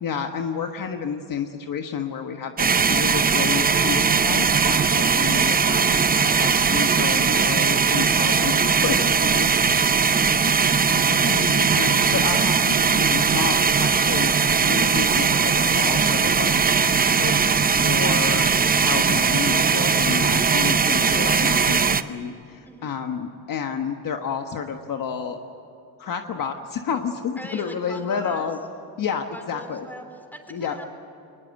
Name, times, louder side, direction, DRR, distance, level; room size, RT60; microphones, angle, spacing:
voice 1, 0.0-6.0 6.3-9.5 10.9-16.5 17.2-18.5 18.8-25.4 26.0-28.6 29.0-29.8 30.5-30.8, left 7 dB, 50° left, 5 dB, 1.4 m, -30 dB
sound 1, 2.6-22.0, right 5 dB, 20° right, 0.7 m, -19 dB
voice 2, 22.6-23.0 27.4-28.5 29.1-30.9, equal, 5° left, 6 dB, 3.5 m, -40 dB
22.5 x 20.0 x 8.2 m, 2.8 s
cardioid pair, 105°, 43 cm